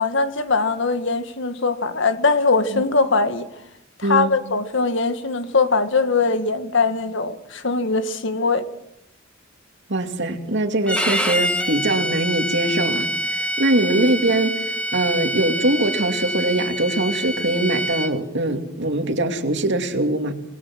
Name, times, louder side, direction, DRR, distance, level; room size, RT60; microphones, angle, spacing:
voice 1, 0.0-3.5 4.0-8.6, left 4 dB, 70° left, 1.7 m, -21 dB
voice 2, 9.9-20.3, right 1 dB, 65° right, 2.7 m, -22 dB
Bowed string instrument, 10.9-18.1, equal, 5° left, 2.2 m, -26 dB
26.5 x 20.5 x 6.2 m
head